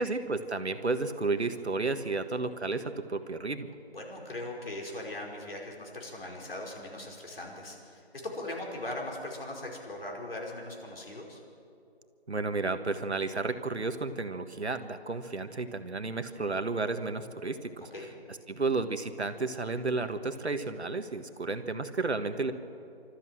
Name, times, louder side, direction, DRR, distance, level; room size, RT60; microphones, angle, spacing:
voice 1, 0.0-3.7 12.3-17.9 18.5-22.5, right 3 dB, 80° right, 9 dB, 1.6 m, -32 dB
voice 2, 3.9-11.4 17.9-18.1, left 1 dB, 60° left, -1 dB, 5.0 m, -39 dB
25.5 x 13.5 x 7.7 m, 2.6 s
figure-of-eight pair, 165°, 33 cm